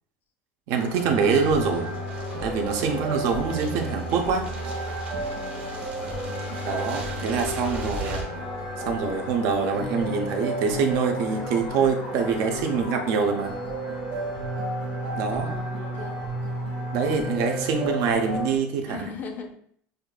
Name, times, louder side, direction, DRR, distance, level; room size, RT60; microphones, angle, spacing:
voice 1, 0.7-1.9 2.4-4.5 6.6-8.2 8.8-13.5 15.1-15.5 16.9-19.1, right 5 dB, 55° right, 4 dB, 0.6 m, -25 dB
sound 1, 0.8-18.5, left 4 dB, 80° left, 0.7 m, -41 dB
sound 2, 0.8-8.2, right 2 dB, 25° right, 0.8 m, -41 dB
sound 3, 1.0-18.6, right 1 dB, 85° right, 1.2 m, -32 dB
voice 2, 2.8-3.2 7.8-8.3 15.3-16.2 18.8-19.5, left 5 dB, 30° left, 4 dB, 0.5 m, -40 dB
6.4 x 2.4 x 2.2 m, 0.63 s
cardioid pair, 160°, 6 cm